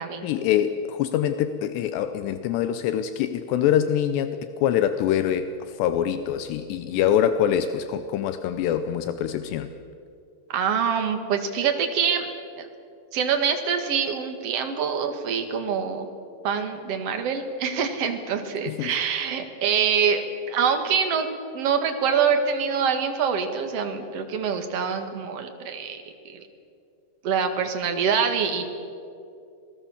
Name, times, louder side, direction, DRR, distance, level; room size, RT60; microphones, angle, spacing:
voice 1, 0.2-9.7 18.7-18.9, left 10 dB, 80° left, 10 dB, 2.9 m, -24 dB
voice 2, 10.5-12.3 12.6-12.7 13.1-16.1 16.4-21.3 21.5-26.4 27.2-28.7, right 6 dB, 50° right, 6 dB, 1.9 m, -25 dB
26.0 x 19.5 x 7.2 m, 2.5 s
omnidirectional pair, 4.9 m